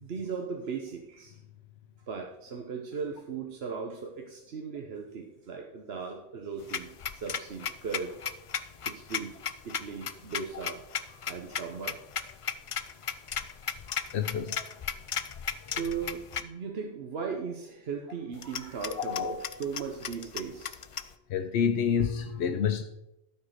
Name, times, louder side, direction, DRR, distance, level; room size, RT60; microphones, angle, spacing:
voice 1, 0.0-1.4 2.1-8.2 8.8-9.4 9.6-12.3 13.7-13.8 15.7-20.8, right 5 dB, 70° right, 2 dB, 1.2 m, -38 dB
sound 1, 6.6-16.4 18.3-21.1, left 7 dB, 50° left, 0.4 m, -36 dB
voice 2, 13.9-14.6 19.0-19.4 21.3-22.8, left 7 dB, 85° left, 6 dB, 0.9 m, -28 dB
12.0 x 4.6 x 6.4 m, 0.89 s
omnidirectional pair, 1.1 m